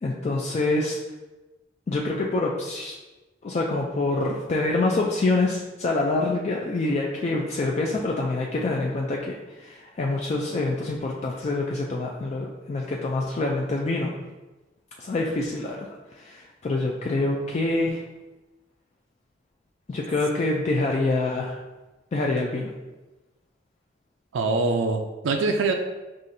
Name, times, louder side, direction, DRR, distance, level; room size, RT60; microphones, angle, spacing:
voice 1, 0.0-1.0 1.9-3.0 3.4-14.1 15.0-15.9 16.2-18.0 19.9-21.6 22.1-22.7, left 2 dB, 35° left, -1 dB, 0.3 m, -26 dB
voice 2, 24.3-25.7, right 3 dB, 85° right, 4 dB, 0.3 m, -24 dB
5.5 x 2.5 x 2.6 m, 1.1 s
head